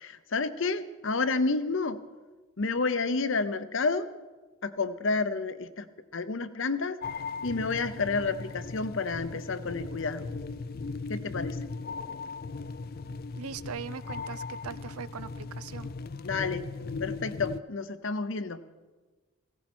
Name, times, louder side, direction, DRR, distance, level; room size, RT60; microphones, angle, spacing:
voice 1, 0.0-2.0 2.6-4.1 4.6-5.9 6.1-7.0 7.4-10.3 11.1-11.6 16.2-16.7 17.0-18.6, left 4 dB, 60° left, 12 dB, 0.8 m, -30 dB
sound 1, 7.0-17.6, left 4 dB, 45° left, 0.4 m, -38 dB
voice 2, 13.4-15.9, right 6 dB, 90° right, 16 dB, 0.6 m, -40 dB
17.5 x 16.0 x 4.4 m, 1.3 s
head